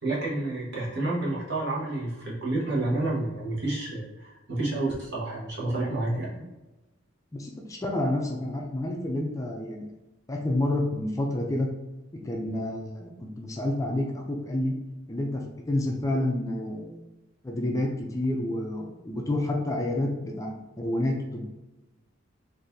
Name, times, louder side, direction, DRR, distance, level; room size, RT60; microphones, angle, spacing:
voice 1, 0.0-6.3, right 2 dB, 60° right, -5 dB, 1.2 m, -29 dB
voice 2, 6.1-6.5 7.3-9.8 10.3-11.7 12.1-14.7 15.1-17.0 17.4-21.4, left 1 dB, 15° left, -1 dB, 0.4 m, -29 dB
3.9 x 2.6 x 2.6 m, 1.1 s
head